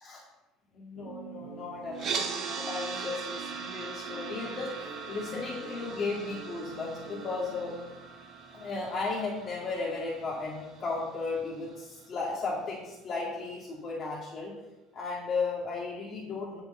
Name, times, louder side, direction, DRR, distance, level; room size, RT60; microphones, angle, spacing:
voice 1, 0.7-7.8 8.5-14.5 14.9-16.6, left 3 dB, 40° left, -4 dB, 2.1 m, -35 dB
sound 1, 0.9-8.3, right 6 dB, 75° right, 1.2 m, -46 dB
sound 2, 1.9-12.0, right 5 dB, 45° right, 1.3 m, -40 dB
9.0 x 4.5 x 6.8 m, 1.0 s
hypercardioid pair, 65°, 0 cm